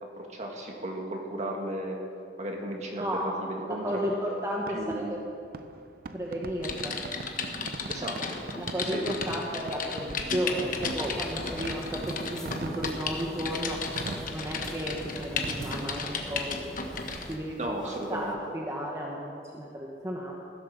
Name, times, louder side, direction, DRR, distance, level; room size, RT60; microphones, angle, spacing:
voice 1, 0.0-2.0 2.4-4.0 4.7-5.2 7.9-8.2 8.9-9.0 17.6-18.4, right 1 dB, 40° right, 1 dB, 1.8 m, -35 dB
voice 2, 3.0-3.3 3.8-5.1 6.1-7.0 8.6-13.8 14.3-16.8 17.3-17.7 18.1-20.3, equal, 15° right, -2 dB, 1.1 m, -33 dB
Fireworks, 4.6-18.2, right 3 dB, 55° right, 0.6 m, -43 dB
Typing, 6.6-17.3 17.9-18.1, left 4 dB, 50° left, 1.1 m, -35 dB
sound 1, 10.6-17.4, equal, 5° left, 0.8 m, -43 dB
15.5 x 7.5 x 6.6 m, 2.5 s
head